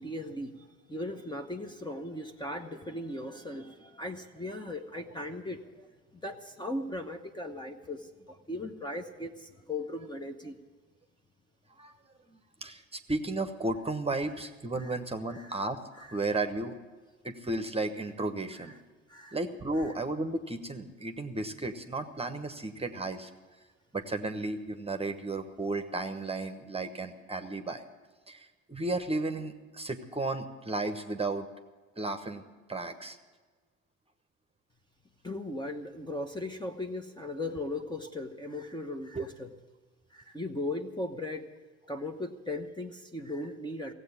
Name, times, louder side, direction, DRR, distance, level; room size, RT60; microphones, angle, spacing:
voice 1, 0.0-5.9 6.1-10.5 14.8-15.0 15.3-15.5 16.0-16.2 19.1-19.4 19.8-19.9 35.2-39.5 40.1-41.5 41.9-43.9, left 1 dB, 10° left, 4 dB, 1.0 m, -38 dB
voice 2, 12.3-16.8 17.2-18.7 19.3-23.3 23.9-27.8 28.3-31.5 32.0-32.4 32.7-33.2 39.1-39.3, right 2 dB, 15° right, 8 dB, 1.1 m, -34 dB
15.5 x 8.0 x 9.6 m, 1.3 s
hypercardioid pair, 65°, 38 cm